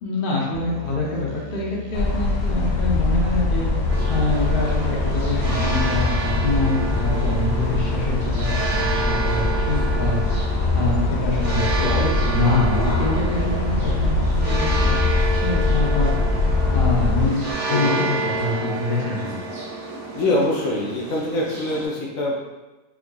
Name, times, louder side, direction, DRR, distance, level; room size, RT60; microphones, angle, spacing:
voice 1, 0.0-1.6 1.9-3.7 4.1-10.2 10.7-16.1 16.7-19.4, left 2 dB, 45° left, -4 dB, 0.7 m, -25 dB
Musical instrument, 0.5-17.5, left 2 dB, 70° right, 0.8 m, -35 dB
sound 1, 1.9-17.3, left 2 dB, 90° left, 1.2 m, -22 dB
sound 2, 3.9-21.8, right 3 dB, 45° right, 0.6 m, -29 dB
voice 2, 11.8-12.2 17.7-18.1 20.1-22.4, left 2 dB, 65° left, -3 dB, 1.1 m, -24 dB
4.6 x 2.8 x 2.2 m, 1.1 s
omnidirectional pair, 1.6 m